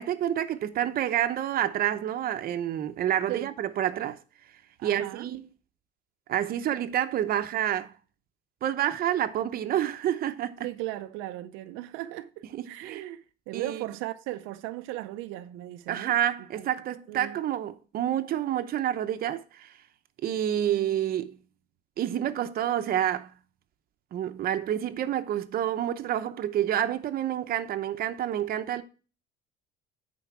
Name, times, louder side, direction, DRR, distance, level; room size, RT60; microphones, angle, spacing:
voice 1, 0.0-4.2 4.8-5.4 6.3-7.9 8.6-10.7 12.5-13.0 13.5-13.8 15.9-19.7 20.2-21.4 22.0-23.3 24.1-28.8, right 11 dB, 50° right, 0.8 m, -28 dB
voice 2, 4.8-5.3 10.6-16.1 16.5-16.7 17.1-17.4, right 16 dB, 85° right, 0.6 m, -37 dB
10.0 x 4.6 x 4.5 m
cardioid pair, 125°, 20 cm